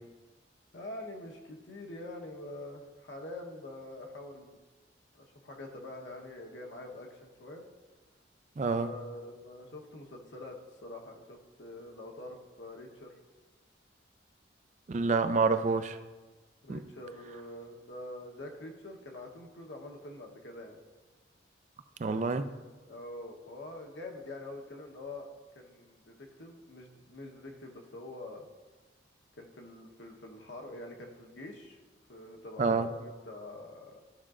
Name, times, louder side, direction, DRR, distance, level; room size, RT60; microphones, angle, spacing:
voice 1, 0.7-4.6 5.1-7.6 8.7-10.6 10.8-13.2 16.6-20.8 22.0-22.4 22.9-25.3 25.5-28.4 29.4-31.8 32.1-34.0, left 1 dB, 75° left, 1.0 m, -45 dB
voice 2, 8.6-8.9 14.9-16.0 16.7-16.8 22.0-22.4 32.6-32.9, right 4 dB, 40° right, 0.3 m, -27 dB
13.5 x 5.0 x 2.5 m
head